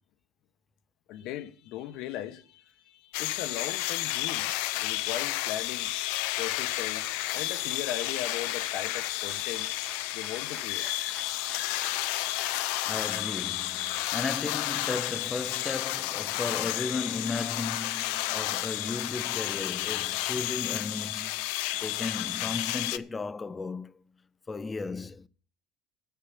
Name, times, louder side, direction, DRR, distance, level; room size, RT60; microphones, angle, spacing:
voice 1, 1.1-5.9 6.4-9.7 10.1-10.9, left 12 dB, 65° left, 1.1 m, -38 dB
sound 1, 3.1-23.0, left 16 dB, 80° left, 0.6 m, -31 dB
Applause, 6.5-21.2, right 4 dB, 20° right, 1.4 m, -52 dB
voice 2, 12.5-21.5 21.8-23.9 24.5-25.3, left 4 dB, 20° left, 0.6 m, -35 dB
10.5 x 8.2 x 7.3 m
cardioid pair, 125°, 0 cm